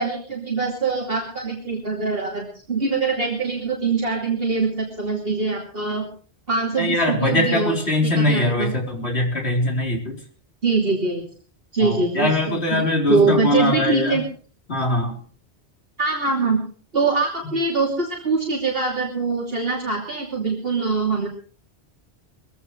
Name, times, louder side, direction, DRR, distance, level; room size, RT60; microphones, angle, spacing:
voice 1, 0.0-6.1 6.5-7.8 8.0-8.7 10.6-11.2 11.7-14.2 16.0-16.6 16.9-21.3, right 4 dB, 65° right, -1 dB, 3.1 m, -23 dB
voice 2, 6.8-10.2 11.8-14.2 14.7-15.1, left 1 dB, 80° left, 0 dB, 4.2 m, -22 dB
22.5 x 16.5 x 3.2 m, 0.41 s
omnidirectional pair, 1.1 m